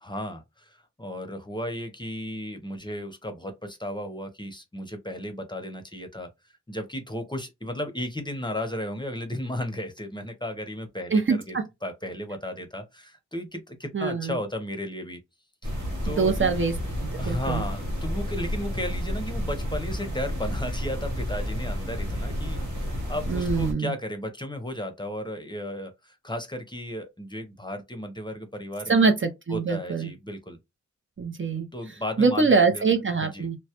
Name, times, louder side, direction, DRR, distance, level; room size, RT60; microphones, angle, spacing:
voice 1, 0.0-6.3 6.7-11.5 11.8-15.2 16.0-16.5 17.2-29.1 29.5-30.6 31.7-32.8 33.2-33.5, left 1 dB, 15° left, 0.6 m, -34 dB
voice 2, 11.1-11.6 13.9-14.4 16.1-16.8 17.1-17.6 23.3-23.9 28.9-30.1 31.2-33.6, right 4 dB, 45° right, 0.5 m, -24 dB
sound 1, 15.6-23.7, equal, 90° right, 0.8 m, -31 dB
2.2 x 2.0 x 2.8 m
wide cardioid pair, 45°, 30 cm